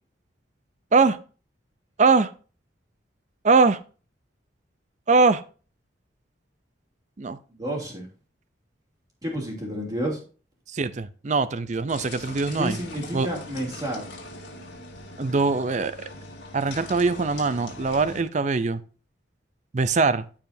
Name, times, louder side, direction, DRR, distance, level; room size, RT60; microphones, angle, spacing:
voice 1, 2.0-2.3 3.4-3.8 5.1-5.4 7.2-7.4 10.7-12.8 13.1-13.3 15.2-16.0 16.5-18.8 19.7-20.2, right 4 dB, 40° right, 14 dB, 0.5 m, -22 dB
voice 2, 7.5-8.1 9.2-10.2 12.5-14.1, right 1 dB, 20° right, -2 dB, 2.9 m, -30 dB
sound 1, 11.9-18.2, left 2 dB, 60° left, 2.3 m, -41 dB
14.0 x 4.9 x 2.7 m, 0.38 s
head